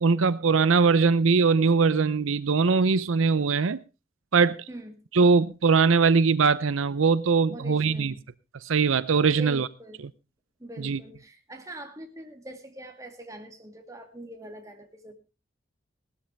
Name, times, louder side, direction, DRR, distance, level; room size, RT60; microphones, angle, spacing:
voice 1, 0.0-3.8 4.3-4.6 5.1-8.1 8.6-9.7 10.8-11.0, right 4 dB, 80° right, 0.6 m, -21 dB
voice 2, 4.7-5.0 7.5-8.2 9.3-10.0 10.6-15.1, right 1 dB, 15° right, 2.2 m, -43 dB
18.5 x 13.0 x 3.4 m
head